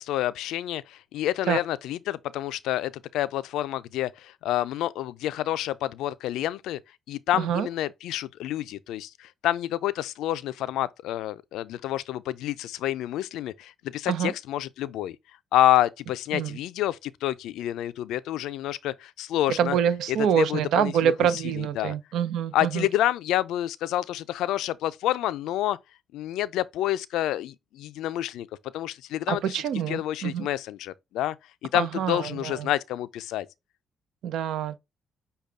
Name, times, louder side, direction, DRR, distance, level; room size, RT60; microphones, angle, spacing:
voice 1, 0.0-6.8 7.1-15.2 15.5-19.8 20.1-22.0 22.5-25.8 26.1-28.5 28.7-31.4 31.6-33.5, left 13 dB, 90° left, 0.4 m, -28 dB
voice 2, 7.4-7.7 14.1-14.3 16.3-16.6 19.6-22.9 29.3-30.5 31.7-32.7 34.2-34.8, right 9 dB, 80° right, 0.6 m, -26 dB
6.6 x 2.3 x 3.4 m
cardioid pair, 90°, 0 cm